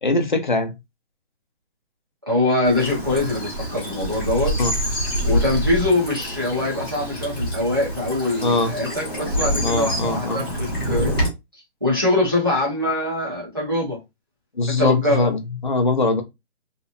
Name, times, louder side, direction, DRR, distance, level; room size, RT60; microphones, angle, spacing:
voice 1, 0.0-0.7 4.6-4.7 8.4-8.7 9.6-10.4 14.6-16.2, left 3 dB, 45° left, 0.5 m, -21 dB
voice 2, 2.3-4.5 5.2-11.2 11.8-14.0 14.8-15.3, left 2 dB, 20° right, 0.7 m, -23 dB
Bird vocalization bird call bird song / Stream, 2.6-11.3, equal, 20° left, 1.0 m, -26 dB
2.7 x 2.0 x 2.3 m
hypercardioid pair, 175°, 36 cm